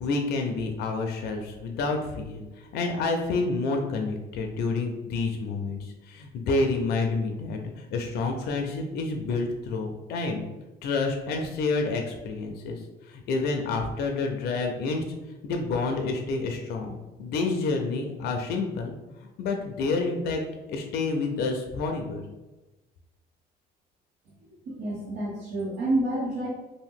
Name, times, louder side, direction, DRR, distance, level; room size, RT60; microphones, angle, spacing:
voice 1, 0.0-10.4 10.8-15.0 15.4-19.0 19.2-20.4 20.7-22.2, left 3 dB, 70° left, 3 dB, 0.4 m, -29 dB
voice 2, 24.7-26.5, right 1 dB, 80° right, -9 dB, 0.9 m, -28 dB
2.7 x 2.1 x 3.6 m, 1.1 s
cardioid pair, 110°, 17 cm